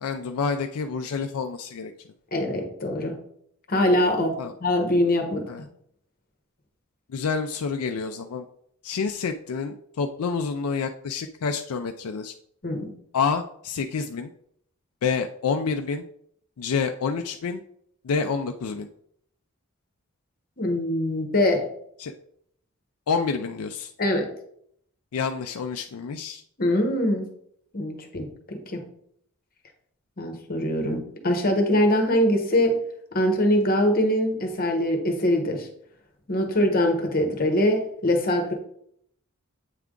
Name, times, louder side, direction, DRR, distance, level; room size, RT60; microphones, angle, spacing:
voice 1, 0.0-1.9 4.4-4.5 5.5-5.6 7.1-8.5 8.8-12.3 13.1-14.3 15.0-16.0 16.6-17.6 18.0-18.9 22.0-22.1 23.1-23.9 25.1-26.4, left 5 dB, 80° left, 6 dB, 0.4 m, -28 dB
voice 2, 2.3-3.2 3.7-5.4 12.6-12.9 20.6-21.6 24.0-24.3 26.6-27.3 27.7-28.8 30.2-32.8 33.1-35.7 36.3-38.5, left 1 dB, 40° left, 4 dB, 1.1 m, -23 dB
8.3 x 3.4 x 3.7 m, 0.68 s
head